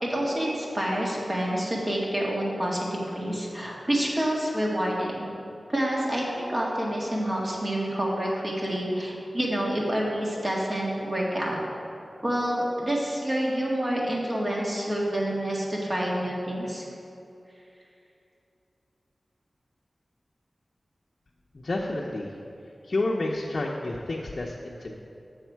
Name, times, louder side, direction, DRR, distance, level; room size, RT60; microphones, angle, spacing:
voice 1, 0.0-5.3 5.7-11.6 12.2-16.8, right 1 dB, 35° right, -3 dB, 1.7 m, -28 dB
voice 2, 21.5-22.3 22.8-24.9, left 2 dB, 60° left, -3 dB, 0.6 m, -30 dB
7.2 x 6.4 x 4.5 m, 2.7 s
wide cardioid pair, 55°, 0 cm